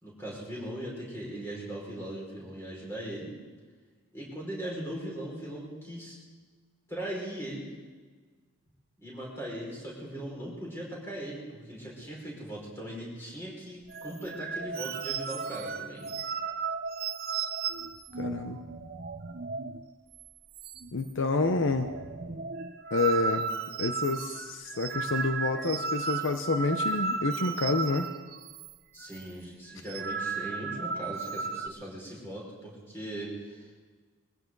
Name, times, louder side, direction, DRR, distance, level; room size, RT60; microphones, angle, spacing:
voice 1, 0.0-3.3 4.1-6.1 6.9-7.7 9.0-16.1 28.9-33.7, right 1 dB, 10° left, -4 dB, 5.4 m, -39 dB
sound 1, 13.9-19.9 20.1-20.3 20.6-21.1 21.4-28.7 29.0-29.2 29.7-31.7, right 5 dB, 45° right, 0.6 m, -34 dB
voice 2, 18.2-18.6 20.9-21.9 22.9-23.5 23.8-28.1, left 3 dB, 65° left, 7 dB, 0.8 m, -28 dB
22.5 x 15.5 x 4.0 m, 1.5 s
head